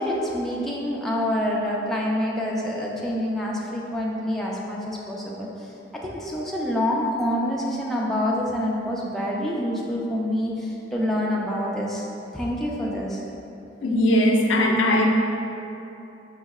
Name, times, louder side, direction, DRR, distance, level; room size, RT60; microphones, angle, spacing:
voice 1, 0.0-5.7 6.0-12.1 12.3-13.2, left 1 dB, ahead, -4 dB, 0.3 m, -27 dB
voice 2, 13.8-15.0, left 1 dB, 85° left, 1 dB, 0.4 m, -19 dB
5.4 x 2.0 x 3.5 m, 2.8 s
head